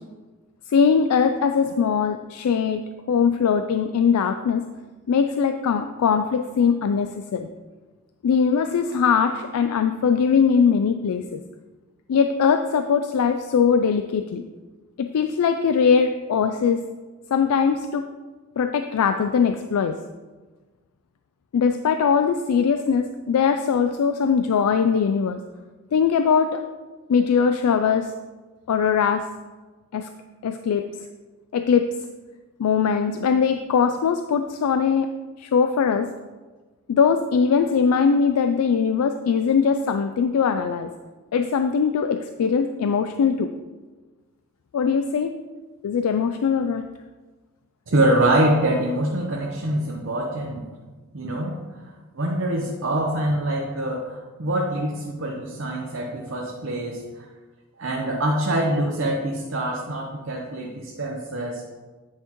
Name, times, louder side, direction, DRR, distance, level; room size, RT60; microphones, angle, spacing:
voice 1, 0.7-2.8 3.1-4.6 5.1-7.5 8.2-11.4 12.1-14.4 15.0-16.8 17.3-18.1 18.6-20.0 21.5-25.4 25.9-26.6 27.1-28.1 28.7-29.2 29.9-30.1 30.4-30.9 31.5-31.9 32.6-35.1 35.4-36.1 36.9-40.9 41.3-43.5 44.7-45.3 45.8-46.9, left 6 dB, 90° left, 7 dB, 0.4 m, -21 dB
voice 2, 47.9-50.7 51.1-51.6 52.1-57.3 57.8-61.6, right 1 dB, 55° right, -1 dB, 0.7 m, -24 dB
9.3 x 5.8 x 3.0 m, 1.3 s
head